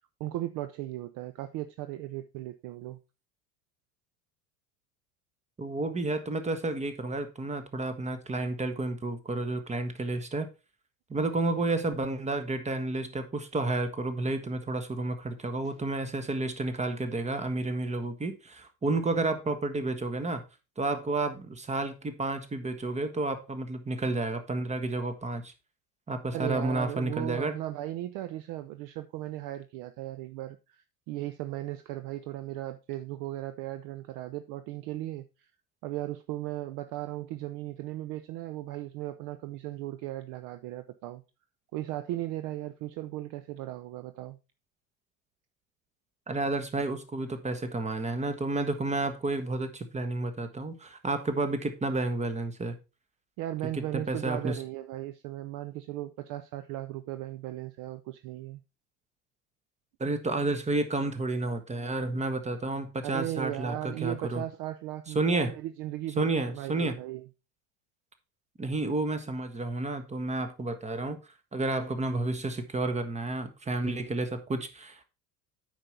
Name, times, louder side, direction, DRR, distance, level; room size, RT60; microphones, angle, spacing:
voice 1, 0.2-3.0 15.6-15.7 26.3-35.5 35.8-41.2 41.7-44.4 53.4-58.6 63.0-67.3, right 15 dB, 45° right, 0.6 m, -37 dB
voice 2, 5.6-10.5 11.1-20.4 20.8-25.5 26.1-27.6 46.3-52.7 53.7-54.6 60.0-64.4 65.1-65.5 66.2-66.9 68.6-71.2 71.5-75.0, right 2 dB, 15° right, 1.3 m, -31 dB
8.8 x 5.3 x 4.3 m
figure-of-eight pair, 70°, 46 cm